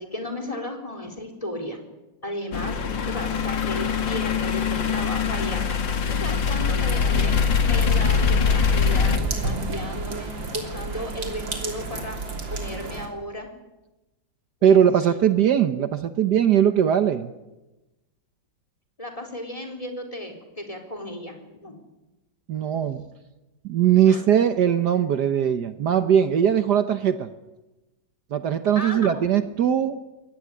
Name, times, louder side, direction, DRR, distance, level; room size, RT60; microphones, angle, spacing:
voice 1, 0.0-1.8 2.2-5.7 6.1-7.4 7.7-12.2 12.5-13.5 14.7-14.8 19.0-21.8 24.1-24.2 28.8-29.4, left 1 dB, 20° left, 6 dB, 4.0 m, -34 dB
sound 1, 2.5-9.2, left 6 dB, 75° left, 2.4 m, -23 dB
sound 2, 6.8-13.1, right 3 dB, 90° right, 3.9 m, -32 dB
voice 2, 14.6-17.3 22.5-23.0 23.6-27.3 28.3-30.0, right 9 dB, 65° right, 10 dB, 1.5 m, -20 dB
22.5 x 17.5 x 9.9 m, 1.0 s
omnidirectional pair, 2.0 m